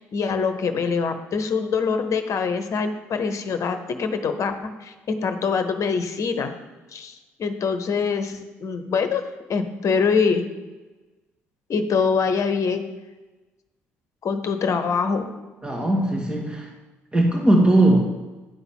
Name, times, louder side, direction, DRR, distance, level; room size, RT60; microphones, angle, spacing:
voice 1, 0.0-6.5 6.9-9.2 9.5-10.4 11.7-12.8 14.2-15.3, left 5 dB, 50° left, 8 dB, 1.0 m, -24 dB
voice 2, 15.6-16.7 17.1-18.1, right 1 dB, 15° right, -1 dB, 1.9 m, -19 dB
10.5 x 4.0 x 7.2 m, 1.2 s
hypercardioid pair, 50°, 7 cm